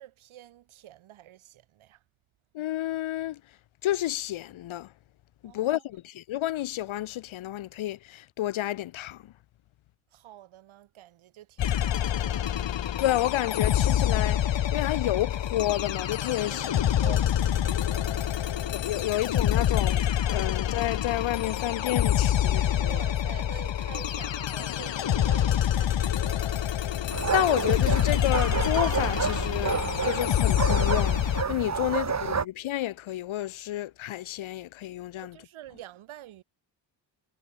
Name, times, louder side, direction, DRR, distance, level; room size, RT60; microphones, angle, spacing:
voice 1, 0.0-2.0 5.4-5.8 10.1-12.5 16.4-19.1 22.8-26.8 31.8-32.2 35.2-36.4, right 13 dB, 90° right, 6.9 m, -47 dB
voice 2, 2.5-3.4 3.8-4.9 5.4-9.3 13.0-17.2 18.7-23.0 27.3-35.4, left 14 dB, 85° left, 1.5 m, -30 dB
sound 1, 11.6-31.4, left 10 dB, 65° left, 1.7 m, -26 dB
sound 2, 27.1-32.4, right 6 dB, 35° right, 1.5 m, -29 dB
cardioid pair, 60°, 47 cm